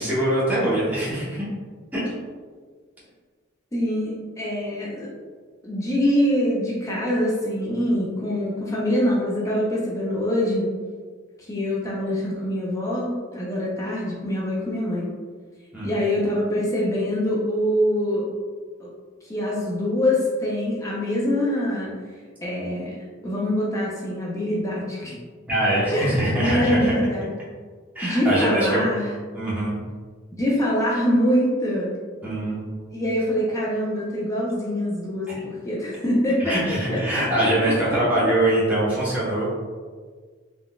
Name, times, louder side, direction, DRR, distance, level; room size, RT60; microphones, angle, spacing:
voice 1, 0.0-1.5 1.9-2.1 15.7-15.9 25.5-26.9 27.9-28.8 29.3-29.8 32.2-32.6 35.3-35.4 36.4-39.5, right 1 dB, 10° right, -9 dB, 0.9 m, -23 dB
voice 2, 3.7-5.1 5.6-10.7 11.4-15.1 15.8-18.3 18.8-18.9 19.2-21.9 22.4-22.9 23.2-25.2 25.9-27.3 28.0-29.1 30.4-31.9 32.9-38.0, left 1 dB, 15° left, -5 dB, 0.4 m, -24 dB
3.7 x 2.4 x 2.2 m, 1.6 s
head